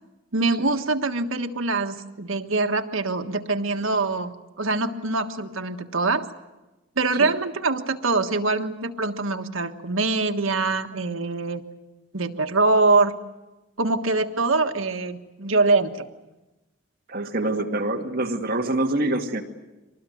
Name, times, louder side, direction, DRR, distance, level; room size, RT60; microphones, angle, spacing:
voice 1, 0.3-4.3 4.6-6.3 7.0-11.6 12.1-13.1 13.8-16.1, right 3 dB, 85° right, 6 dB, 1.5 m, -24 dB
voice 2, 17.1-19.4, right 2 dB, 45° right, 2 dB, 2.1 m, -25 dB
25.0 x 19.5 x 9.3 m, 1.1 s
head